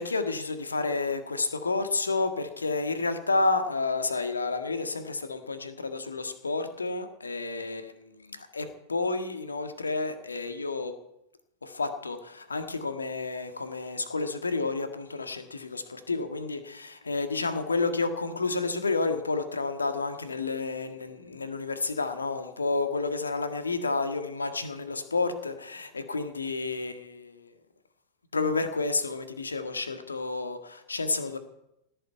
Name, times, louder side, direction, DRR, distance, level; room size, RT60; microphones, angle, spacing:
voice 1, 0.0-10.9 11.6-27.5 28.3-31.4, left 3 dB, 75° left, 7 dB, 1.8 m, -30 dB
17.5 x 7.7 x 9.2 m, 0.83 s
figure-of-eight pair, 90°, 0 cm